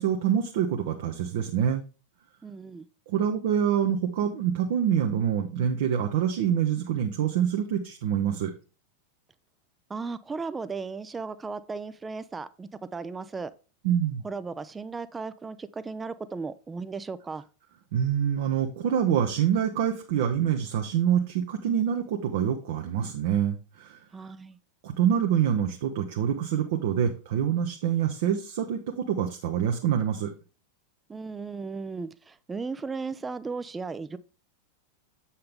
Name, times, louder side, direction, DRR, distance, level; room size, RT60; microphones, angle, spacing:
voice 1, 0.0-1.8 3.1-8.5 13.8-14.2 17.9-24.0 24.8-30.3, right 9 dB, 55° right, 0.8 m, -26 dB
voice 2, 2.4-2.9 9.9-13.5 14.2-17.4 24.1-24.6 31.1-34.2, right 4 dB, 15° right, 0.5 m, -36 dB
7.7 x 5.6 x 3.5 m
figure-of-eight pair, 90°, 0 cm